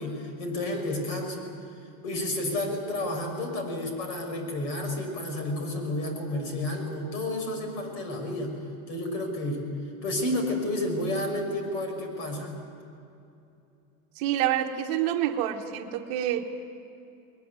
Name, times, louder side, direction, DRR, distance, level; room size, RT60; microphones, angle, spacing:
voice 1, 0.0-1.5 2.0-8.6 8.9-9.7 10.0-12.6, left 1 dB, 60° left, 4 dB, 6.1 m, -31 dB
voice 2, 14.1-16.4, right 11 dB, 40° right, 5 dB, 1.2 m, -27 dB
21.0 x 20.5 x 9.5 m, 2.7 s
supercardioid pair, 165°, 40 cm